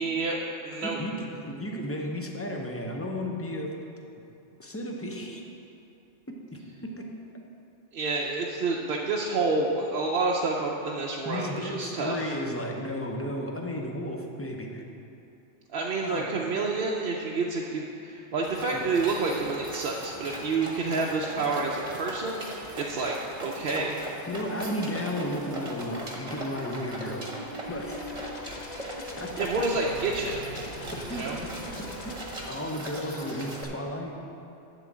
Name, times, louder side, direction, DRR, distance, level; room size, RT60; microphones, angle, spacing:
voice 1, 0.0-1.0 7.9-12.4 15.7-23.1 23.4-24.0 29.4-30.5 31.1-31.4, right 3 dB, 55° right, -2 dB, 0.8 m, -29 dB
voice 2, 0.8-3.7 4.6-5.4 6.3-7.1 11.2-14.8 16.0-16.3 18.6-18.8 24.3-28.1 29.2-29.3 30.9-31.5 31.8-32.2 32.5-34.1, equal, 15° left, 1 dB, 0.6 m, -34 dB
sound 1, 18.4-33.6, right 1 dB, 30° right, 1.1 m, -40 dB
sound 2, 24.1-33.5, left 1 dB, 40° left, 0.8 m, -42 dB
11.0 x 3.8 x 7.3 m, 2.8 s
omnidirectional pair, 1.3 m